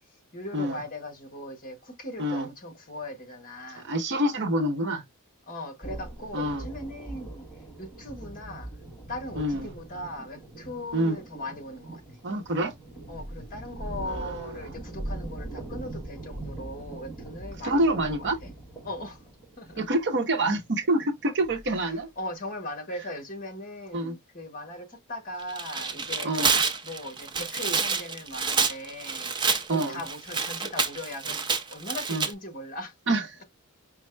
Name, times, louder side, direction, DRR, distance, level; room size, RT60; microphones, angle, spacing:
voice 1, 0.3-3.9 5.5-7.5 7.8-8.8 9.1-12.2 13.1-18.1 18.4-18.5 18.8-19.2 19.6-19.8 21.7-29.3 29.7-32.9, left 1 dB, 40° left, 1.2 m, -39 dB
voice 2, 3.8-5.0 6.3-6.7 9.4-9.7 10.9-11.2 12.2-12.7 14.0-14.6 17.6-18.4 19.8-22.1 23.9-24.1 26.2-26.6 29.7-30.0 32.1-32.2 33.1-33.2, right 1 dB, 55° right, 0.8 m, -26 dB
sound 1, 5.8-22.0, right 1 dB, 10° left, 1.2 m, -41 dB
Tearing, 25.4-32.3, right 5 dB, 20° right, 0.5 m, -28 dB
5.3 x 2.2 x 3.2 m
head